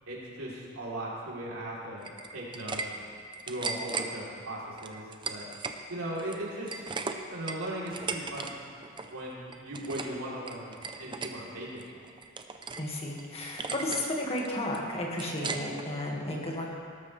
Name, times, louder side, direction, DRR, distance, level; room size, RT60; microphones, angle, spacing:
voice 1, 0.1-3.1 3.5-5.4 5.9-6.8 7.1-8.6 9.1-11.7 11.9-12.0, right 1 dB, 85° right, -5 dB, 3.5 m, -38 dB
sound 1, 2.0-2.9 3.2-4.1 4.8-5.8 6.1-8.5 8.8-9.1 9.5-10.2 10.5-11.3 11.8-12.9 13.2-13.3 13.6-14.1 14.4-15.9, right 4 dB, 20° right, 0.6 m, -37 dB
voice 2, 12.8-16.7, left 1 dB, 30° left, -2 dB, 1.9 m, -33 dB
18.5 x 13.0 x 3.4 m, 2.3 s
head